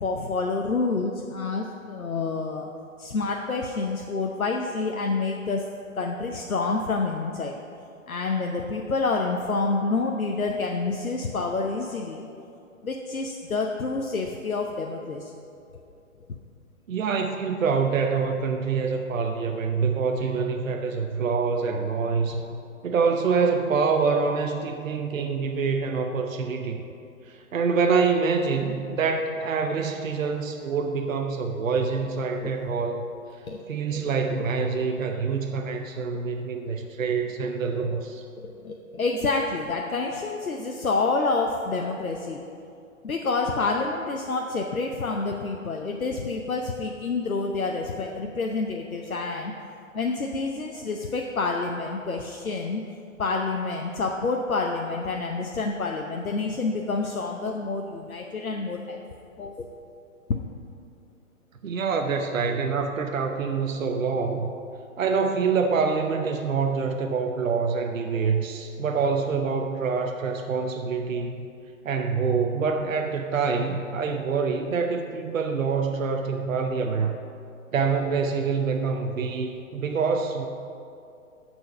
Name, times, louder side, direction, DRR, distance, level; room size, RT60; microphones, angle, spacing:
voice 1, 0.0-2.7 3.0-5.6 5.9-7.6 8.1-12.2 12.8-15.3 32.4-32.5 33.5-33.6 33.9-34.0 34.3-34.7 37.7-37.8 38.4-42.4 43.0-49.5 49.9-52.8 53.2-59.0 59.4-59.7 60.3-60.4, left 3 dB, 85° left, 2 dB, 0.8 m, -28 dB
voice 2, 16.9-26.8 27.5-33.0 33.7-38.2 61.6-64.5 65.0-71.5 71.8-77.2 77.7-80.4, right 5 dB, 70° right, 4 dB, 0.8 m, -26 dB
14.0 x 4.6 x 5.5 m, 2.6 s
figure-of-eight pair, 120°, 41 cm